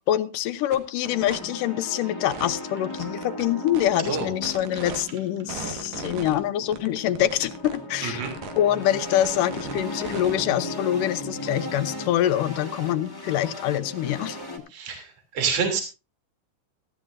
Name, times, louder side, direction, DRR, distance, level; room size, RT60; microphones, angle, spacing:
voice 1, 0.1-8.3 8.6-14.4, left 12 dB, 80° left, 13 dB, 2.5 m, -25 dB
sound 1, 0.7-0.8 1.0-1.4 2.3-2.5 2.9-5.0 5.5-6.3 6.7-7.8 8.1-8.6 8.8-10.4, right 6 dB, 85° right, 3.3 m, -37 dB
sound 2, 1.0-14.6, left 1 dB, 10° left, 2.0 m, -37 dB
voice 2, 14.7-15.8, right 5 dB, 50° right, 5 dB, 4.1 m, -27 dB
17.5 x 14.5 x 2.6 m, 0.30 s
omnidirectional pair, 3.7 m